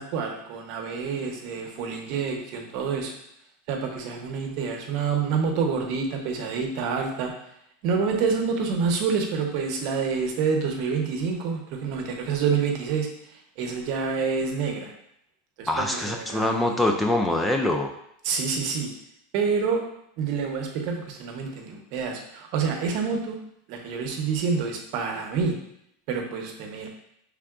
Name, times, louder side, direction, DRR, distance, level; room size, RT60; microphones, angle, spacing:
voice 1, 0.0-3.1 3.7-7.3 7.8-13.1 13.6-14.9 15.6-16.8 18.2-18.9 19.3-19.8 20.2-23.4 23.7-25.6 26.1-26.9, right 5 dB, 55° right, 2 dB, 0.9 m, -27 dB
voice 2, 15.7-17.9, left 1 dB, 5° left, 3 dB, 0.3 m, -24 dB
5.6 x 3.5 x 2.5 m, 0.75 s
supercardioid pair, 140°, 0 cm